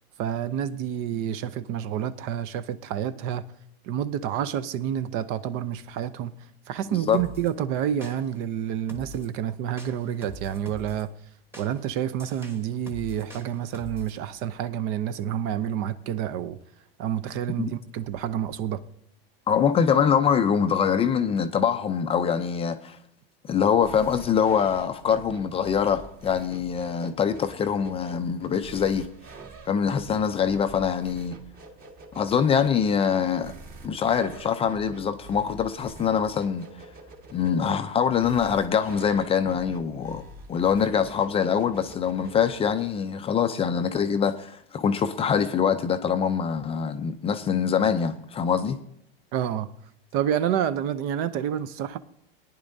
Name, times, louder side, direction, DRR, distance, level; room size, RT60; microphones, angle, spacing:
voice 1, 0.2-3.4 3.8-6.3 6.7-11.1 11.6-16.6 17.0-18.8 49.3-49.7 50.1-52.0, right 10 dB, 45° right, 0.6 m, -29 dB
sound 1, 7.1-7.5 8.0-8.5 8.9-9.3 9.8-11.0 11.5-14.2, left 1 dB, 10° right, 1.2 m, -44 dB
voice 2, 19.5-23.0 23.4-29.1 29.7-31.4 32.1-33.5 33.8-36.6 37.3-40.2 40.5-48.8, left 7 dB, 20° left, 0.5 m, -24 dB
sound 2, 23.7-42.9, right 2 dB, 30° right, 1.6 m, -46 dB
18.0 x 10.0 x 2.7 m
supercardioid pair, 130°, 31 cm